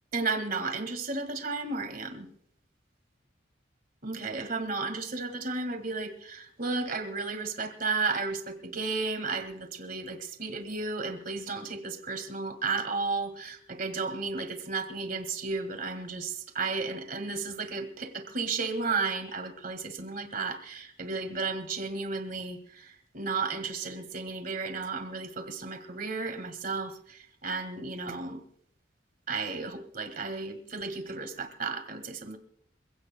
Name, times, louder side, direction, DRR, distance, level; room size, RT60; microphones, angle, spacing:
voice 1, 0.1-2.3 4.0-28.4 29.3-32.4, right 4 dB, 50° right, 1.8 m, -33 dB
27.0 x 16.5 x 2.2 m
head